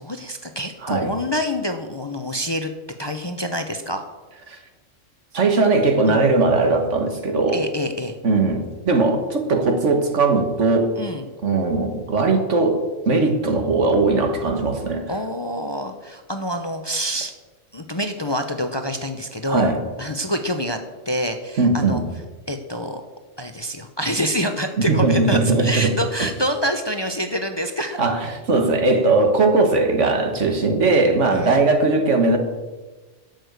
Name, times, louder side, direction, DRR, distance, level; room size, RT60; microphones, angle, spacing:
voice 1, 0.0-2.7 3.0-4.1 6.1-6.2 7.5-8.2 11.0-11.3 15.1-17.3 17.7-19.7 20.0-20.8 21.0-22.0 22.5-23.0 23.4-28.0 31.3-31.6, equal, 25° left, 6 dB, 0.7 m, -26 dB
voice 2, 5.3-7.6 8.2-10.9 11.4-12.8 13.1-15.1 19.5-19.8 21.6-22.0 24.9-25.9 28.0-32.4, right 3 dB, 75° right, 5 dB, 1.8 m, -19 dB
11.5 x 6.1 x 8.1 m, 1.2 s
omnidirectional pair, 1.3 m